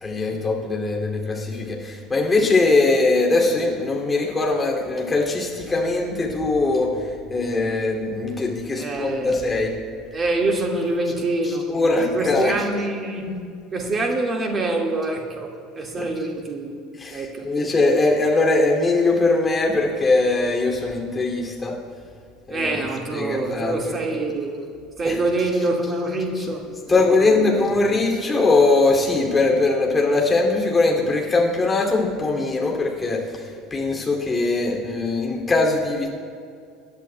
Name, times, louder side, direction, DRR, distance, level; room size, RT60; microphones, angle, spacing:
voice 1, 0.0-9.7 11.4-12.5 16.0-16.1 17.0-21.8 22.5-22.8 23.1-23.9 25.0-25.2 26.4-26.5 26.9-36.1, left 3 dB, 20° left, -1 dB, 2.7 m, -21 dB
voice 2, 8.7-9.4 10.1-11.7 12.0-16.8 17.1-17.5 22.5-24.6 25.0-27.6, right 2 dB, 30° right, 2 dB, 1.9 m, -25 dB
25.5 x 10.5 x 2.3 m, 2.2 s
figure-of-eight pair, 65°, 0 cm